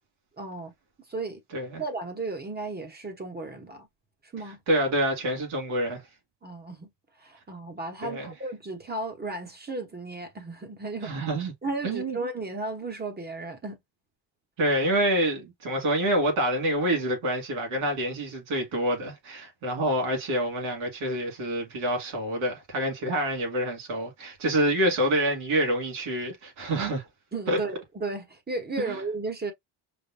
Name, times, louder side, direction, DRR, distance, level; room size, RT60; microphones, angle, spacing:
voice 1, 0.4-0.7 1.1-1.4 1.8-3.9 4.2-4.6 6.4-6.9 7.2-11.2 11.6-13.8 27.3-29.5, right 3 dB, 20° right, 1.0 m, -34 dB
voice 2, 4.7-6.0 8.0-8.3 11.0-11.5 11.8-12.2 14.6-27.1 27.5-27.6 28.8-29.0, right 1 dB, 90° right, 2.4 m, -27 dB
5.1 x 2.2 x 2.7 m
cardioid pair, 125°, 47 cm